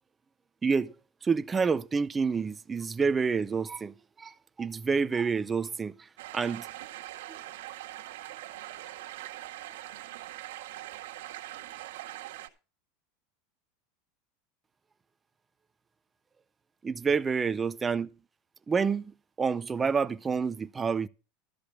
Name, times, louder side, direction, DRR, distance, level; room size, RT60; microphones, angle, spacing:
voice 1, 0.6-0.9 1.2-4.3 4.6-5.9 6.3-6.7 16.8-18.1 18.7-19.1 19.4-21.1, right 5 dB, 15° right, 0.5 m, -28 dB
sound 1, 6.2-12.5, right 15 dB, 85° right, 1.7 m, -42 dB
13.5 x 5.0 x 7.9 m
supercardioid pair, 160°, 0 cm